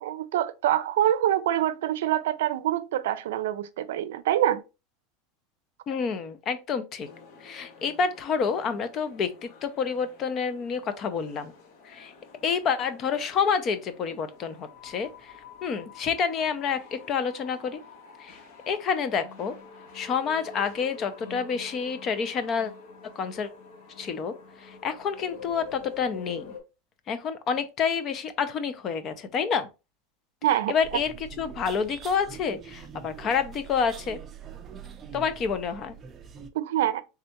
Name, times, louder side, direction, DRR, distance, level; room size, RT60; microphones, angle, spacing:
voice 1, 0.0-4.6 30.4-30.8 36.5-37.0, right 12 dB, 90° right, 0.5 m, -25 dB
voice 2, 5.9-7.1 7.4-11.5 11.9-12.1 12.4-15.3 15.6-17.8 18.2-18.4 18.7-19.5 19.9-22.7 23.2-23.5 24.0-26.5 27.1-29.7 30.7-34.2 35.1-35.9, left 6 dB, 35° left, 0.5 m, -28 dB
sound 1, 7.0-26.6, left 5 dB, 60° left, 1.1 m, -47 dB
sound 2, 30.8-36.5, right 8 dB, 25° right, 0.5 m, -44 dB
3.6 x 3.3 x 2.9 m
supercardioid pair, 150°, 0 cm